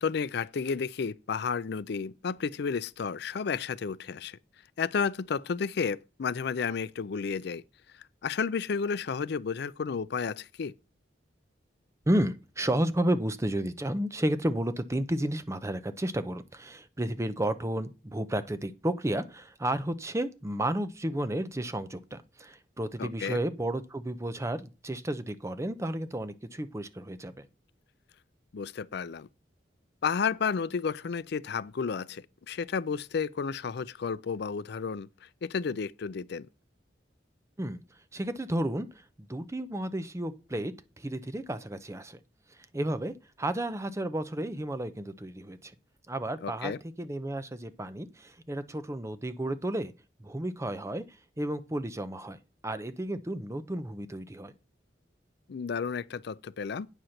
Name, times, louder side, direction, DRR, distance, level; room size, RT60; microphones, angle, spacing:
voice 1, 0.0-4.4 4.8-7.6 8.2-10.7 23.0-23.4 28.5-29.3 30.0-36.5 46.4-46.8 55.5-56.9, left 5 dB, 65° left, 0.4 m, -32 dB
voice 2, 12.1-27.5 37.6-37.8 38.1-39.0 39.3-42.2 42.7-45.7 46.1-49.9 50.2-51.0 51.4-52.4 52.6-54.5, right 1 dB, 15° right, 0.6 m, -32 dB
9.1 x 4.3 x 6.4 m
head